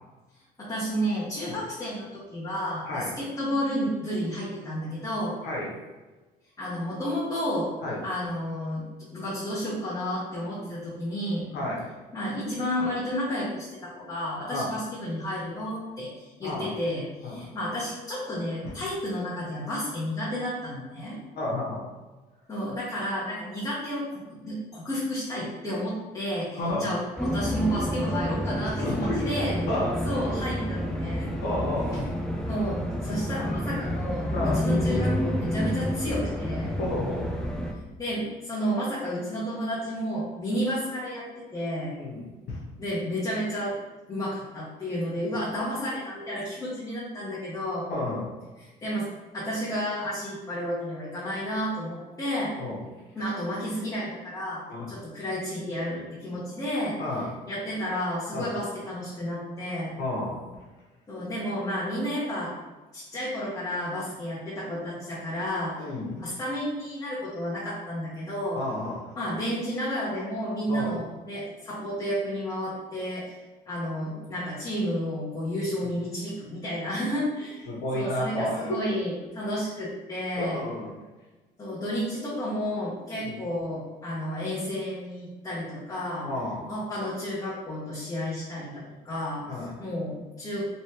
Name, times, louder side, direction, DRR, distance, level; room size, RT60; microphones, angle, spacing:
voice 1, 0.6-5.3 6.6-7.7 8.0-8.9 9.1-11.4 12.1-21.2 22.5-29.5 30.0-31.3 31.9-32.0 32.5-36.7 38.0-41.9 42.8-43.8 44.1-47.9 48.6-49.1 49.3-52.5 53.1-57.0 57.5-59.9 61.1-62.5 62.9-65.9 66.2-68.6 69.2-73.4 73.7-77.7 77.9-80.6 81.6-86.3 86.6-89.4 89.8-90.6, equal, 20° left, -9 dB, 1.1 m, -31 dB
voice 2, 11.5-11.9 14.5-14.7 16.4-16.7 17.2-17.5 21.3-21.8 26.5-26.9 28.6-29.9 31.4-32.0 34.3-34.6 36.8-37.3 42.0-42.6 47.9-48.3 52.6-52.8 54.7-54.9 57.0-57.3 58.3-58.5 60.0-60.4 65.8-66.2 68.5-69.1 70.7-70.9 77.7-78.8 80.4-81.0 83.1-83.3 86.2-86.6 89.5-89.7, left 1 dB, 75° left, -3 dB, 1.2 m, -31 dB
sound 1, 27.2-37.7, equal, 5° left, 0.4 m, -29 dB
3.2 x 3.1 x 2.9 m, 1.2 s
cardioid pair, 110°, 17 cm